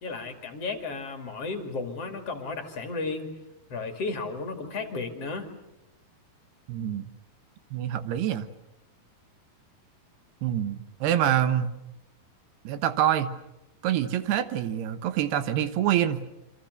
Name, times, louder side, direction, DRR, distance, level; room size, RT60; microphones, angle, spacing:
voice 1, 0.0-3.3 3.7-5.5, left 3 dB, 45° left, 5 dB, 2.9 m, -33 dB
voice 2, 6.7-7.1 7.7-8.5 10.4-11.7 12.6-13.3 13.8-16.2, right 10 dB, 85° right, 11 dB, 3.3 m, -26 dB
28.0 x 26.0 x 6.7 m, 0.91 s
omnidirectional pair, 4.6 m